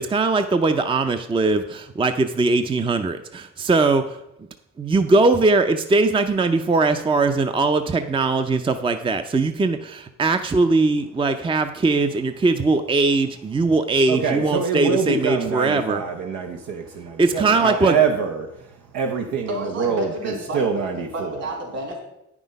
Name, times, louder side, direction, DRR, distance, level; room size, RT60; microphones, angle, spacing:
voice 1, 0.0-4.2 4.8-16.0 17.2-18.0, right 3 dB, 15° right, 8 dB, 0.5 m, -20 dB
voice 2, 14.1-18.5 18.9-21.1, right 5 dB, 85° right, 3 dB, 0.9 m, -25 dB
voice 3, 19.5-22.0, equal, 60° right, 1 dB, 3.5 m, -31 dB
9.2 x 6.1 x 5.2 m, 0.88 s
cardioid pair, 90°, 30 cm